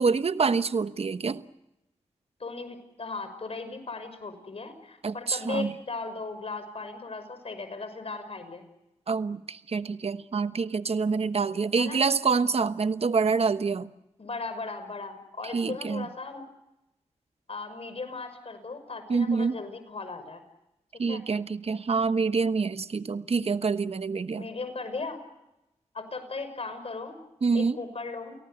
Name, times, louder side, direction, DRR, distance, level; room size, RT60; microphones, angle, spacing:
voice 1, 0.0-1.4 5.0-5.7 9.1-13.9 15.5-16.1 19.1-19.6 21.0-24.5 27.4-27.8, right 5 dB, 55° right, 11 dB, 1.2 m, -26 dB
voice 2, 2.4-8.6 11.8-12.0 14.2-16.4 17.5-20.4 21.1-21.2 24.3-25.2 25.9-27.2 27.5-28.4, left 3 dB, 55° left, 9 dB, 6.1 m, -37 dB
30.0 x 18.5 x 8.1 m, 0.93 s
cardioid pair, 45°, 12 cm